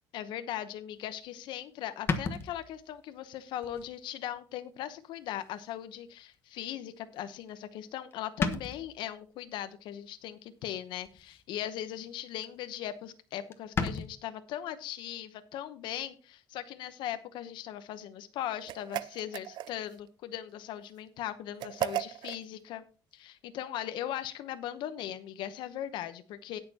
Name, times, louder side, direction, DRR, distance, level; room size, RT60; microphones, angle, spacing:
voice 1, 0.1-22.8 23.1-26.6, left 11 dB, 65° left, 11 dB, 0.9 m, -39 dB
sound 1, 1.3-1.4 2.1-3.0 3.6-3.9 4.4-4.5 5.7-5.8 7.5-7.8 8.1-8.2 8.4-9.0 11.0-11.4 11.8-12.1 12.4-12.5 12.7-12.8 13.1-13.2 13.5-14.1, left 4 dB, 25° left, 1.2 m, -34 dB
sound 2, 18.7-20.0 21.6-22.4, right 14 dB, 60° right, 0.5 m, -35 dB
18.5 x 6.7 x 2.8 m, 0.36 s
cardioid pair, 145°, 9 cm